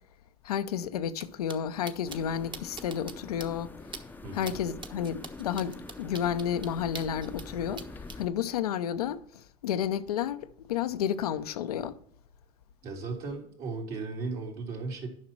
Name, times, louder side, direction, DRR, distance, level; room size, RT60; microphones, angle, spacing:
voice 1, 0.4-3.7 4.3-12.0, left 9 dB, 90° left, 0.6 m, -31 dB
sound 1, 1.1-1.2 1.5-1.6 1.9-2.2 2.5-3.1 3.4-3.5 3.9-4.0 4.4-4.5 4.8-7.5 7.8-8.2, right 4 dB, 25° right, 1.2 m, -42 dB
sound 2, 2.1-8.3, left 3 dB, 10° left, 0.6 m, -45 dB
voice 2, 4.2-4.5 12.8-15.1, right 4 dB, 55° right, 3.3 m, -36 dB
11.0 x 5.9 x 4.5 m
hypercardioid pair, 80°, 19 cm